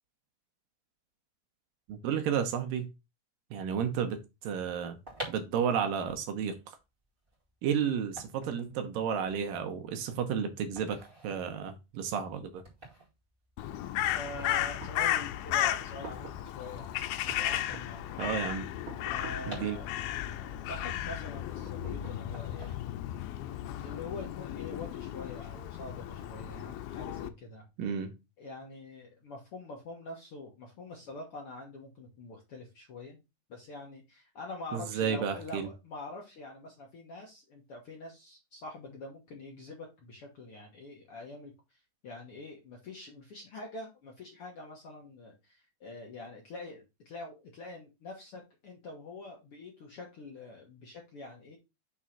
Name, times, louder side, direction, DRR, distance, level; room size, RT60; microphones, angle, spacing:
voice 1, 1.9-2.9 3.5-5.0 5.3-6.8 7.6-11.0 11.2-12.6 18.2-18.7 19.5-19.8 27.8-28.1 34.7-35.7, right 7 dB, 75° right, 2.6 m, -32 dB
sound 1, 5.0-16.9 17.2-17.3 17.5-20.3 20.7-21.8 22.3-23.3 23.7-24.0, right 2 dB, 15° right, 2.2 m, -49 dB
Crow, 13.6-27.3, left 12 dB, 90° left, 2.4 m, -35 dB
voice 2, 14.1-18.3 19.1-19.9 20.6-22.7 23.8-27.6 28.4-33.2 33.5-51.6, left 2 dB, 60° left, 1.5 m, -45 dB
sound 2, 14.4-15.1 15.8-16.5 17.3-18.0 18.9-19.6 20.3-20.9 21.6-22.5, right 5 dB, 40° right, 2.8 m, -49 dB
6.2 x 3.7 x 5.7 m
omnidirectional pair, 4.2 m